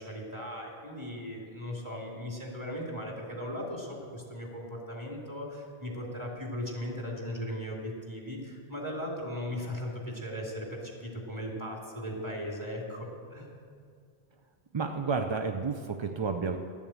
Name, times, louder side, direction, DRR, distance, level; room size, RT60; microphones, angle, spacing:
voice 1, 0.0-13.5, equal, 15° right, -2 dB, 2.3 m, -38 dB
voice 2, 14.7-16.6, right 5 dB, 45° right, 5 dB, 0.4 m, -31 dB
12.0 x 7.2 x 8.5 m, 2.2 s
omnidirectional pair, 1.1 m